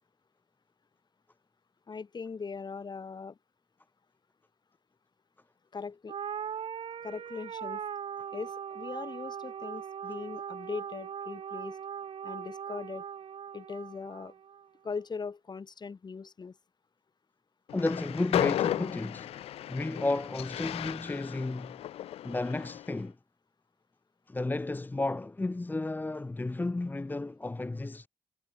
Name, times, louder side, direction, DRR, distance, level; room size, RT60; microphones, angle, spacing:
voice 1, 1.9-3.4 5.7-6.2 7.0-7.8 8.3-11.8 12.2-13.1 13.5-14.3 14.8-16.6, left 5 dB, 45° left, 3.4 m, -40 dB
sound 1, 6.1-14.7, right 8 dB, 70° right, 4.5 m, -40 dB
Train, 17.7-23.0, left 12 dB, 80° left, 0.9 m, -34 dB
voice 2, 17.7-19.4 19.7-21.8 22.2-23.2 24.3-28.1, left 2 dB, 20° left, 0.7 m, -33 dB
supercardioid pair, 55°, 10 cm